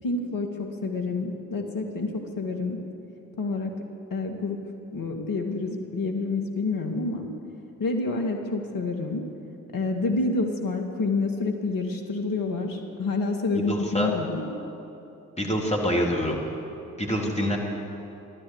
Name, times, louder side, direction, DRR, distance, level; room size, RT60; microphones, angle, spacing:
voice 1, 0.0-2.8 3.4-3.7 4.1-4.6 4.9-7.3 7.8-9.2 9.7-14.5, left 3 dB, 60° left, 3 dB, 2.1 m, -28 dB
voice 2, 13.7-14.1 15.4-16.4 17.0-17.6, equal, 15° left, -2 dB, 3.4 m, -25 dB
13.0 x 12.0 x 8.1 m, 2.8 s
hypercardioid pair, 40°, 38 cm